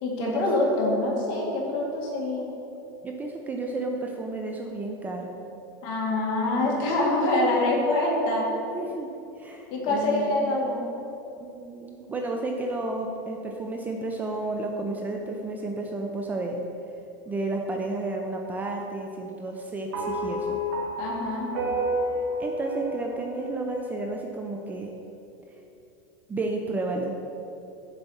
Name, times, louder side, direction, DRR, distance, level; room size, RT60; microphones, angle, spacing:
voice 1, 0.0-2.5 5.8-8.5 9.7-10.9 21.0-21.5, left 2 dB, 50° left, -2 dB, 1.7 m, -25 dB
voice 2, 3.0-5.3 8.7-10.6 11.4-16.6 17.3-20.6 22.4-24.9 26.3-27.1, right 2 dB, 15° right, 2 dB, 0.4 m, -32 dB
sound 1, 19.9-24.4, equal, 75° right, 1.1 m, -30 dB
7.0 x 4.1 x 5.5 m, 2.8 s
supercardioid pair, 150°, 11 cm